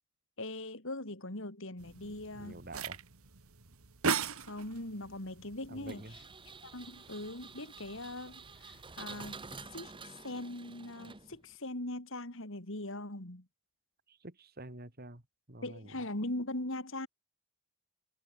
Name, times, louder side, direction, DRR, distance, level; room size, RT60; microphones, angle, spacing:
voice 1, 0.4-2.6 4.4-6.1 6.6-13.5 15.6-17.1, left 1 dB, 60° left, 3.4 m, -41 dB
sound 1, 1.8-9.6, right 6 dB, 70° right, 1.7 m, -41 dB
voice 2, 2.0-3.0 5.7-6.2 14.1-15.2 15.5-15.9, right 2 dB, 45° right, 2.6 m, -48 dB
Engine, 5.9-11.6, right 4 dB, 20° right, 1.7 m, -50 dB
head